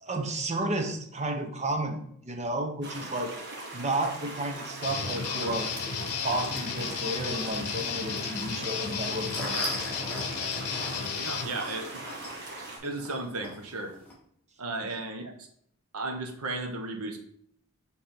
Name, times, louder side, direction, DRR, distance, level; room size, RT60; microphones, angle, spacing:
voice 1, 0.0-3.4 3.7-5.7 6.2-9.7, right 1 dB, 30° right, 4 dB, 0.9 m, -32 dB
sound 1, 2.8-12.8, right 2 dB, 50° right, 1.6 m, -40 dB
Guitar, 4.8-11.5, left 6 dB, 80° left, 0.7 m, -33 dB
sound 2, 9.1-14.1, left 1 dB, 10° left, 1.8 m, -39 dB
voice 2, 11.2-12.0 12.8-14.0 14.6-15.5 15.9-17.2, right 2 dB, 80° right, 4 dB, 1.1 m, -34 dB
6.9 x 3.6 x 4.5 m, 0.66 s
head